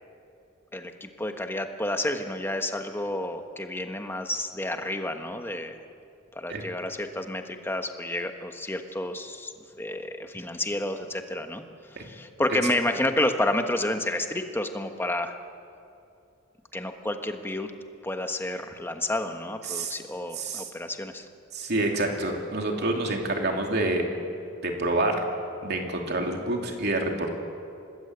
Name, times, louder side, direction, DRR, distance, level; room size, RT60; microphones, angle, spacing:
voice 1, 0.7-5.8 6.3-9.5 9.8-11.6 11.9-15.4 16.7-17.7 18.0-21.3 26.2-26.4, left 1 dB, 10° left, 6 dB, 1.3 m, -30 dB
voice 2, 20.3-20.7 21.5-24.1 24.6-25.2 25.6-27.3, right 2 dB, 55° right, 2 dB, 3.1 m, -27 dB
25.5 x 20.0 x 8.1 m, 2.6 s
head